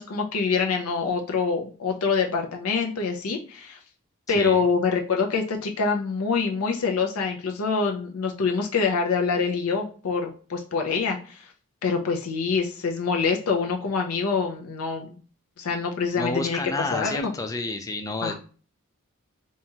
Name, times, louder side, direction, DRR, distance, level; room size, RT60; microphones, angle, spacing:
voice 1, 0.0-3.8 4.3-11.4 11.8-15.2 15.6-17.3 18.2-18.3, left 5 dB, 80° left, 2 dB, 0.5 m, -25 dB
voice 2, 4.3-4.6 16.2-18.3, left 2 dB, 15° left, 5 dB, 0.3 m, -30 dB
3.5 x 2.8 x 2.8 m, 0.40 s
head